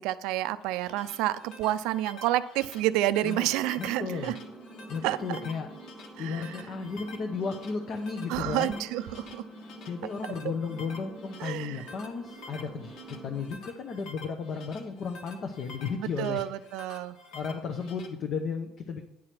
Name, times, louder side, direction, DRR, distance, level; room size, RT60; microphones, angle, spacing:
voice 1, 0.0-4.3 5.0-5.4 6.2-6.6 8.3-9.4 11.4-11.9 16.2-17.2, right 14 dB, 70° right, 14 dB, 0.5 m, -29 dB
sound 1, 0.6-18.1, left 3 dB, 55° left, 1.5 m, -49 dB
sound 2, 3.6-13.5, right 2 dB, 5° left, 1.2 m, -46 dB
voice 2, 3.8-4.3 4.9-5.7 6.2-8.8 9.9-13.0 13.2-16.4 17.3-19.0, left 5 dB, 35° left, 4 dB, 0.7 m, -34 dB
10.0 x 4.8 x 5.9 m, 0.86 s
cardioid pair, 175°, 0 cm